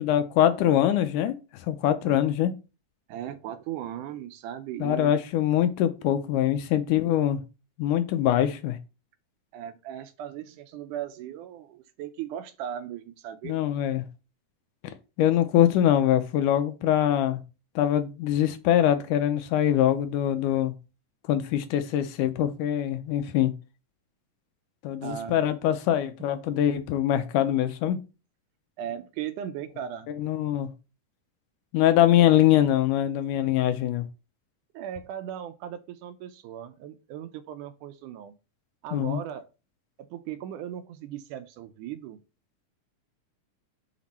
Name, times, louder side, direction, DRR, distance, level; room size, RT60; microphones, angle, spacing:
voice 1, 0.0-1.4 1.7-2.5 4.8-7.4 7.8-8.8 13.4-14.0 15.2-17.4 17.8-20.7 21.3-23.5 24.8-28.0 30.2-30.7 31.7-34.0 38.9-39.2, left 11 dB, 80° left, 2.1 m, -23 dB
voice 2, 3.1-5.2 9.5-13.6 25.0-25.4 28.8-30.1 32.2-32.3 34.7-38.4 38.8-39.5 40.0-42.2, right 10 dB, 80° right, 2.0 m, -37 dB
5.9 x 5.2 x 4.2 m
omnidirectional pair, 3.9 m